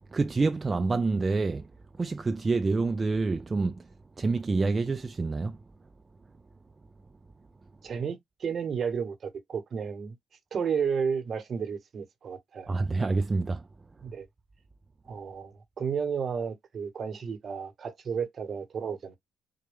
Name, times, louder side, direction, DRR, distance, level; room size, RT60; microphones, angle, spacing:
voice 1, 0.1-1.7 2.0-3.8 4.2-5.6 12.7-13.6, right 3 dB, 30° right, 0.3 m, -27 dB
voice 2, 7.8-10.1 10.5-12.7 14.0-14.3 15.1-19.2, right 6 dB, 50° right, 1.0 m, -32 dB
4.2 x 2.2 x 3.4 m
cardioid pair, 90°, 0 cm